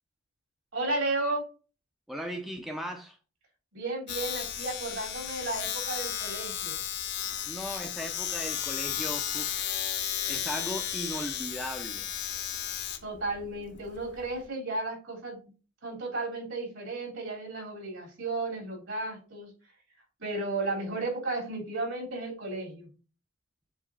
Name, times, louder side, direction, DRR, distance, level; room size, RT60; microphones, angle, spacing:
voice 1, 0.7-1.5 3.7-6.8 7.3-7.4 13.0-15.4 15.8-19.5 20.2-22.9, right 2 dB, 60° right, 3.8 m, -34 dB
voice 2, 2.1-3.2 7.5-12.1, equal, ahead, 0.6 m, -38 dB
Domestic sounds home sounds, 4.1-14.5, left 10 dB, 55° left, 0.8 m, -34 dB
7.2 x 3.8 x 3.9 m
head